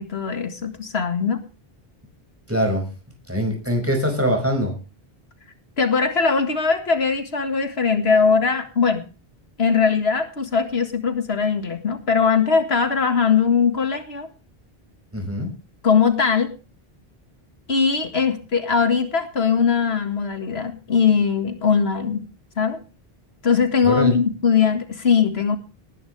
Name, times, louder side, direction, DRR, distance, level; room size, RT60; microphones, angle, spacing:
voice 1, 0.0-1.4 5.8-9.0 9.6-14.3 15.8-16.5 17.7-22.2 22.6-22.8 23.4-25.6, left 6 dB, 90° left, 7 dB, 2.1 m, -20 dB
voice 2, 2.5-2.9 3.3-4.8 15.1-15.5 23.8-24.2, equal, 15° right, 2 dB, 5.6 m, -23 dB
19.5 x 10.5 x 3.4 m, 0.33 s
omnidirectional pair, 1.0 m